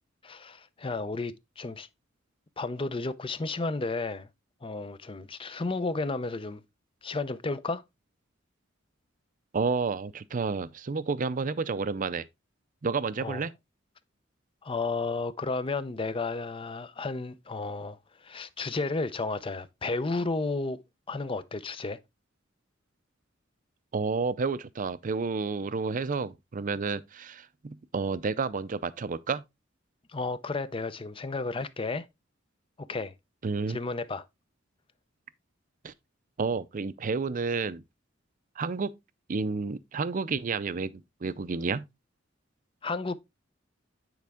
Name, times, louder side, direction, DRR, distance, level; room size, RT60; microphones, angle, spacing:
voice 1, 0.2-1.9 2.6-4.3 4.6-6.6 7.0-7.8 13.2-13.4 14.6-20.8 21.1-22.0 30.1-32.1 32.8-33.1 33.7-34.2 42.8-43.1, left 3 dB, 25° left, 0.5 m, -32 dB
voice 2, 9.5-12.3 12.8-13.5 23.9-29.4 33.4-33.8 35.8-35.9 36.4-37.8 38.6-38.9 39.3-41.8, right 4 dB, 40° right, 0.5 m, -30 dB
9.2 x 4.7 x 3.5 m
head